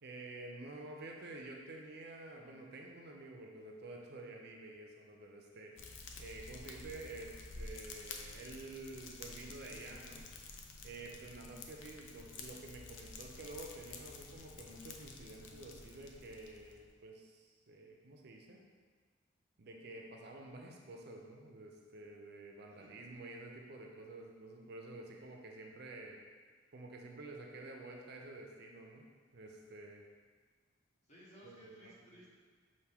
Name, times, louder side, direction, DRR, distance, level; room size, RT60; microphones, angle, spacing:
voice 1, 0.0-5.7 6.2-10.3 10.8-18.6 19.6-26.2 26.7-30.0 31.4-32.1, right 2 dB, 60° right, 1 dB, 0.5 m, -50 dB
Fire, 5.8-16.9, left 3 dB, 80° left, 0.5 m, -51 dB
voice 2, 31.1-32.3, left 1 dB, 40° left, -7 dB, 1.2 m, -58 dB
5.7 x 2.6 x 3.5 m, 1.5 s
head